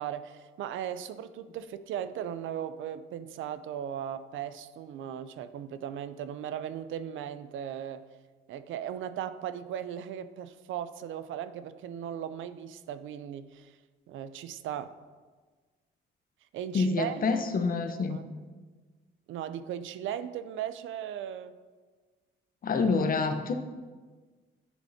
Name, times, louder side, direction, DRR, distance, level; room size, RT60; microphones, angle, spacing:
voice 1, 0.0-8.0 8.5-13.7 14.1-14.9 16.5-17.2 18.1-18.2 19.3-21.5, right 9 dB, 80° right, 13 dB, 0.5 m, -37 dB
voice 2, 16.7-18.2 22.6-23.5, left 4 dB, 45° left, 7 dB, 0.8 m, -27 dB
10.5 x 6.3 x 2.8 m, 1.4 s
cardioid pair, 90°, 20 cm